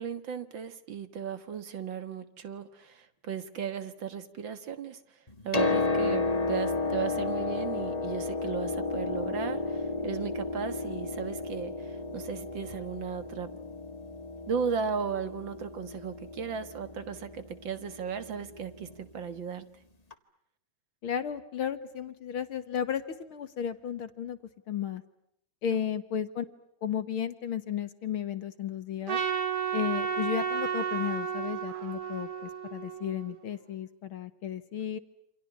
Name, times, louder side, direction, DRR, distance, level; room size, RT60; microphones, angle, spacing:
voice 1, 0.0-5.2 5.4-13.5 14.5-19.7 25.7-25.8, right 7 dB, 50° right, 12 dB, 1.7 m, -36 dB
Piano, 5.3-19.0 20.1-20.2, left 3 dB, 25° left, 0.8 m, -33 dB
voice 2, 21.0-24.4 24.7-25.0 25.6-26.4 26.8-29.2 29.7-35.0, left 9 dB, 60° left, 11 dB, 1.5 m, -34 dB
Trumpet, 29.1-33.5, right 7 dB, 75° right, 4.2 m, -32 dB
29.0 x 27.0 x 7.2 m, 0.74 s
omnidirectional pair, 3.7 m